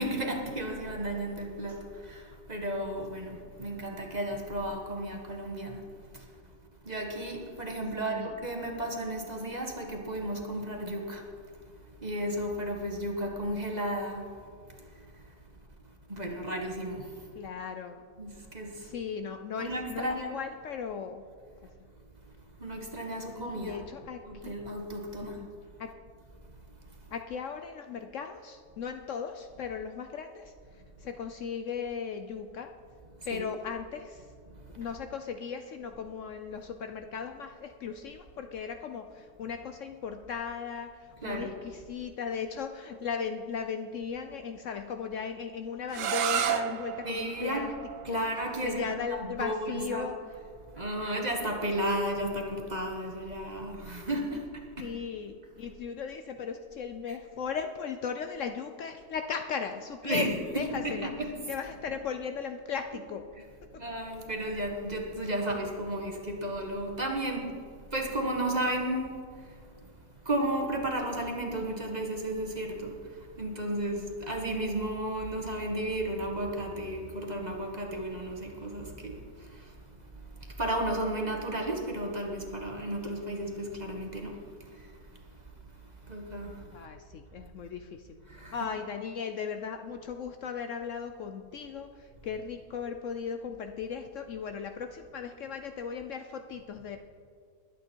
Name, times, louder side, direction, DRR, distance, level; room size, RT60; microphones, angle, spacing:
voice 1, 0.0-6.3 6.8-11.2 12.0-14.4 14.8-15.2 16.1-17.3 18.2-18.9 19.6-20.4 22.6-23.8 24.2-25.4 33.3-33.4 34.5-34.9 41.2-41.5 47.0-47.6 48.0-50.1 50.7-54.9 57.1-57.2 60.0-60.3 60.5-61.4 63.7-67.6 67.9-69.9 70.2-79.8 80.4-85.0 86.0-86.8 88.3-88.5, right 1 dB, 30° right, 1 dB, 1.5 m, -34 dB
voice 2, 8.0-8.3 17.3-18.0 18.8-21.2 23.3-24.6 25.4-25.5 25.8-25.9 27.1-30.5 31.0-32.7 33.2-34.3 34.8-47.7 48.1-48.3 48.6-50.2 54.8-61.1 61.5-63.3 86.7-88.2 88.5-97.0, left 6 dB, 65° left, 7 dB, 0.9 m, -37 dB
sound 1, 45.9-51.6, right 9 dB, 65° right, 1.0 m, -35 dB
21.0 x 8.4 x 4.5 m, 2.1 s
omnidirectional pair, 1.6 m